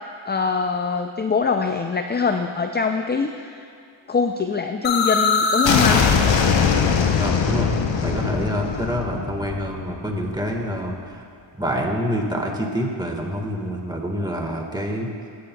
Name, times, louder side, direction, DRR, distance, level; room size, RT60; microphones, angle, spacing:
voice 1, 0.3-3.7 4.1-6.1, left 5 dB, 25° left, 6 dB, 0.3 m, -23 dB
sound 1, 4.8-10.6, left 5 dB, 70° left, 0.8 m, -21 dB
voice 2, 7.2-7.7 8.0-11.2 11.6-15.1, equal, 10° right, 0 dB, 1.5 m, -26 dB
16.0 x 7.7 x 2.2 m, 2.6 s
cardioid pair, 55°, 47 cm